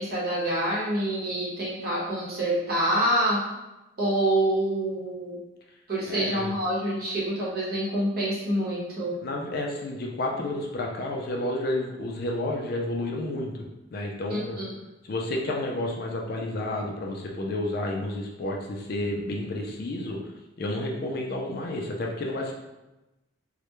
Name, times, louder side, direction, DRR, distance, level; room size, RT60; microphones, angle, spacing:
voice 1, 0.0-3.4 4.0-5.4 5.9-9.2 14.3-14.7, right 1 dB, 50° right, -6 dB, 0.8 m, -26 dB
voice 2, 6.0-6.5 9.2-13.5 13.9-14.6 15.0-20.2 20.6-22.5, left 1 dB, 50° left, 0 dB, 0.3 m, -30 dB
2.2 x 2.1 x 2.9 m, 0.99 s
head